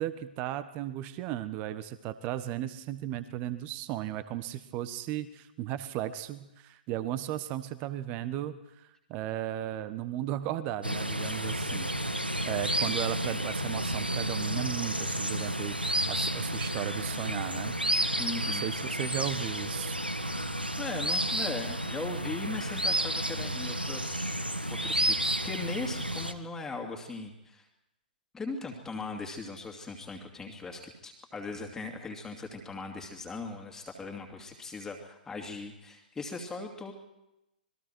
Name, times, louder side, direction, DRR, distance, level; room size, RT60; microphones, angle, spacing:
voice 1, 0.0-17.8 18.5-20.0, right 13 dB, 30° right, 13 dB, 1.3 m, -36 dB
sound 1, 10.8-26.3, right 1 dB, 90° right, 1.5 m, -31 dB
voice 2, 18.2-18.7 20.8-24.4 24.7-27.6 28.3-36.9, left 3 dB, 10° left, 2 dB, 2.6 m, -39 dB
26.5 x 21.5 x 4.6 m, 0.89 s
figure-of-eight pair, 115°, 5 cm